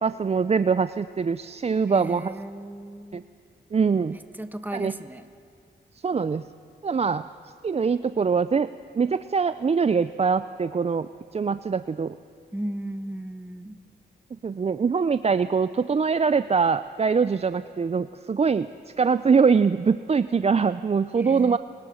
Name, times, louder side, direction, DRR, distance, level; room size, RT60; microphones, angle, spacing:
voice 1, 0.0-2.3 3.1-3.2 3.7-4.2 4.7-4.9 6.0-6.5 6.8-7.2 7.6-8.7 8.9-12.2 14.3-18.7 19.0-21.6, right 5 dB, 35° right, 13 dB, 0.5 m, -23 dB
voice 2, 1.9-3.2 4.1-5.3 12.5-13.8 21.2-21.6, right 1 dB, 10° right, 9 dB, 1.4 m, -35 dB
28.5 x 19.5 x 6.4 m, 2.3 s
cardioid pair, 65°, 19 cm